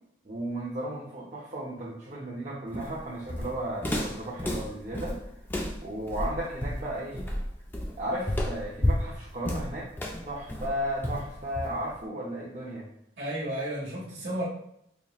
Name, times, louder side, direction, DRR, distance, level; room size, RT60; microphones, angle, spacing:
voice 1, 0.2-5.2 5.8-7.2 8.0-9.9 10.2-12.9, right 1 dB, 40° right, -7 dB, 0.6 m, -34 dB
Walk footsteps, 2.7-12.0, left 1 dB, 10° left, 0.3 m, -31 dB
voice 2, 13.2-14.4, right 1 dB, 75° right, -6 dB, 1.0 m, -32 dB
4.2 x 2.9 x 2.4 m, 0.74 s
head